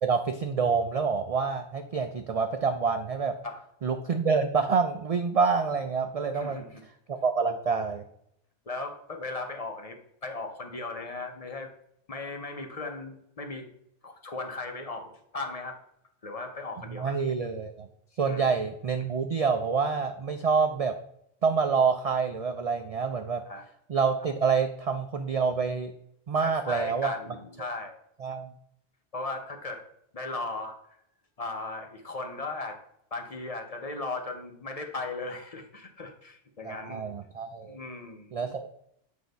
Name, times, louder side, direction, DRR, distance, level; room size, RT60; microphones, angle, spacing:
voice 1, 0.0-3.3 3.8-6.6 7.2-8.0 16.9-17.9 18.2-20.9 21.4-23.4 23.9-25.9 26.3-27.1 28.2-28.5 36.6-37.8 38.3-38.7, right 5 dB, 75° right, 6 dB, 0.3 m, -27 dB
voice 2, 6.3-6.8 8.7-11.7 12.1-13.7 14.0-15.8 16.2-17.2 18.3-18.5 23.5-23.6 26.4-28.0 29.1-29.8 30.1-30.8 31.4-32.8 33.1-37.1 37.7-38.3, left 3 dB, 40° left, 4 dB, 0.6 m, -37 dB
8.0 x 2.8 x 5.1 m, 0.75 s
omnidirectional pair, 1.2 m